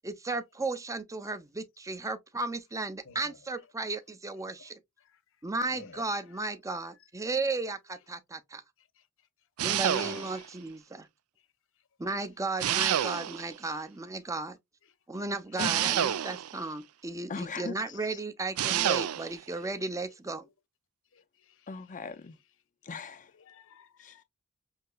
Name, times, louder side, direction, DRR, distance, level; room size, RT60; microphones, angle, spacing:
voice 1, 0.0-4.8 5.4-8.6 9.6-11.1 12.0-14.6 15.1-20.5, right 3 dB, 15° right, 0.6 m, -35 dB
voice 2, 3.1-3.4 4.6-4.7 5.7-6.1 9.7-10.5 21.1-21.5 23.5-24.2, left 5 dB, 60° left, 0.8 m, -50 dB
sound 1, 9.6-10.5 12.6-13.6 15.6-16.6 18.6-19.4, right 10 dB, 70° right, 0.4 m, -28 dB
voice 3, 15.6-16.1 17.3-18.2 21.7-22.4 22.8-23.3 24.0-24.2, left 4 dB, 35° left, 0.5 m, -40 dB
6.4 x 2.8 x 2.2 m
head